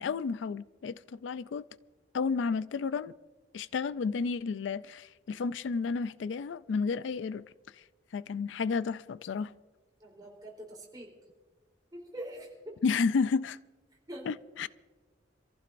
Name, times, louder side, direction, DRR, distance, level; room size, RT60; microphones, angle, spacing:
voice 1, 0.0-1.6 2.1-3.1 3.5-7.4 8.1-9.5 12.8-13.6 14.3-14.7, left 5 dB, 80° left, 0.4 m, -31 dB
voice 2, 10.0-11.1 11.9-12.8 14.1-14.3, right 1 dB, 20° right, 3.6 m, -44 dB
27.0 x 15.0 x 2.6 m
head